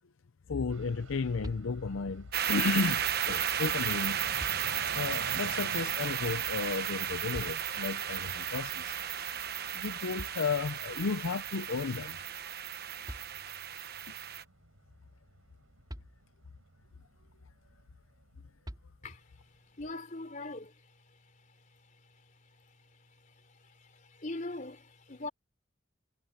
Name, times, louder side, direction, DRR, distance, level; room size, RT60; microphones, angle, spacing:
voice 1, 0.5-4.2 4.9-9.0 9.7-12.2, left 4 dB, 70° left, 0.6 m, -33 dB
Fixed-wing aircraft airplane, 0.7-19.1, right 3 dB, 80° right, 4.2 m, -50 dB
sound 1, 2.3-14.4, right 9 dB, 50° right, 1.1 m, -34 dB
sound 2, 10.2-11.0 12.7-12.8 13.1-13.8 15.9-16.7 18.6-19.4, equal, 20° right, 5.3 m, -47 dB
voice 2, 19.8-20.7 24.1-25.3, left 2 dB, 40° left, 3.5 m, -40 dB
head